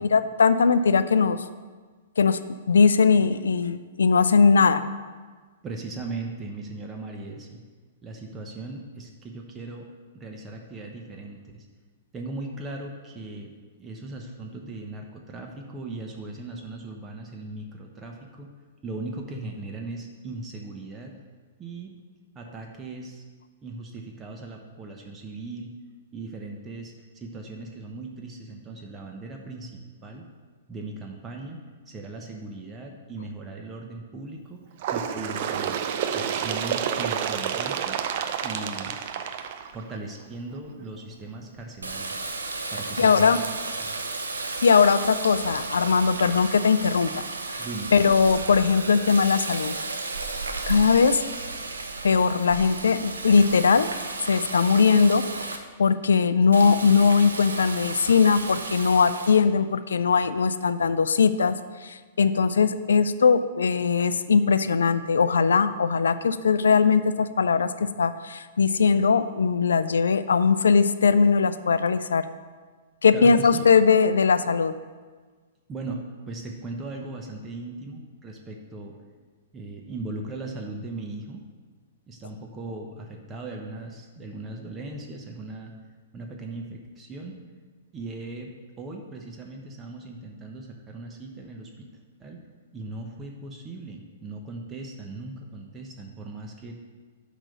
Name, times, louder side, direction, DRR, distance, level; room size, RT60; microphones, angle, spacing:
voice 1, 0.0-1.4 2.2-2.4 2.7-4.8 42.6-42.7 43.0-43.4 44.6-47.1 47.5-47.7 47.9-49.7 50.7-51.2 52.0-53.9 54.2-61.5 61.8-72.2 73.0-74.7, left 5 dB, 75° left, 13 dB, 0.4 m, -20 dB
voice 2, 5.6-7.6 8.0-9.9 10.1-11.7 12.1-18.5 18.8-21.2 21.6-22.0 22.3-23.2 23.6-25.7 26.1-29.7 30.0-30.3 30.7-34.6 34.9-35.8 36.1-38.0 38.4-39.0 39.7-42.3 42.7-43.4 43.8-44.0 47.6-47.9 73.1-73.6 75.7-79.0 79.5-81.4 82.1-85.7 86.1-87.4 87.9-91.9 92.2-92.4 92.7-96.8, right 2 dB, 20° right, 1 dB, 0.9 m, -38 dB
Bird, 34.8-40.2 41.1-41.2 41.6-41.7 42.6-42.7 43.6-43.7 44.6-44.7, right 8 dB, 50° right, 0.5 m, -29 dB
Water tap faucet, 41.8-55.6 56.5-59.4, right 3 dB, 80° right, 0.7 m, -33 dB
6.0 x 5.0 x 6.7 m, 1.4 s
figure-of-eight pair, 110°, 0 cm